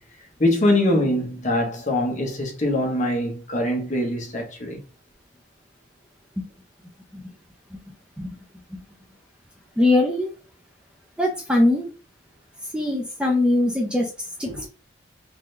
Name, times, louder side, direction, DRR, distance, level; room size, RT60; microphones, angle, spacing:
voice 1, 0.4-4.8 14.5-14.7, left 1 dB, 35° left, 0.9 m, -23 dB
voice 2, 9.8-10.3 11.2-11.9 12.7-14.7, left 2 dB, 5° right, 0.5 m, -22 dB
3.8 x 2.6 x 3.2 m
head